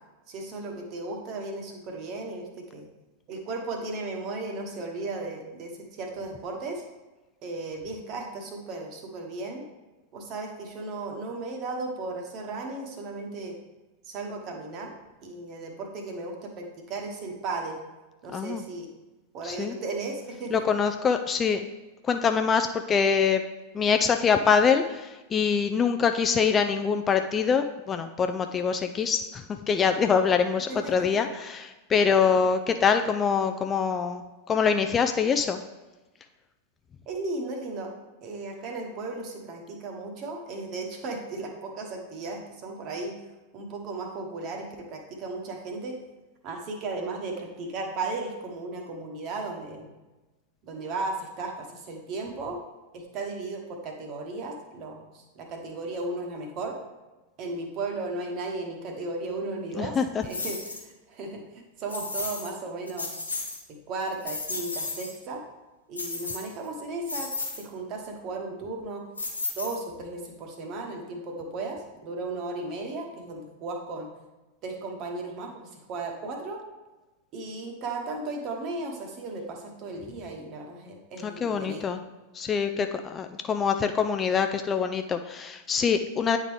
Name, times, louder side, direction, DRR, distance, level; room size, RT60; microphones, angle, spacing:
voice 1, 0.3-2.9 3.3-6.8 7.4-9.6 10.1-13.6 14.0-14.9 15.2-17.8 18.2-18.9 19.3-20.8 30.7-31.1 32.2-32.3 37.1-37.9 38.2-43.2 43.5-46.0 46.4-49.9 50.6-52.6 52.9-56.8 57.4-60.0 60.2-63.1 63.7-65.4 65.9-69.1 69.5-74.1 74.6-76.6 77.3-81.9, right 3 dB, 40° right, 3 dB, 1.1 m, -35 dB
voice 2, 18.3-18.6 19.4-19.8 20.5-21.7 22.0-23.4 23.7-35.6 59.8-60.2 81.2-82.0 82.3-86.4, left 6 dB, 20° left, 7 dB, 0.3 m, -24 dB
sound 1, 60.3-60.8 61.9-62.5 62.9-63.6 64.0-65.2 66.0-66.7 67.1-67.6 69.2-70.0, left 3 dB, 80° left, 1.0 m, -34 dB
9.2 x 3.7 x 3.3 m, 1.1 s
figure-of-eight pair, 90°, 0 cm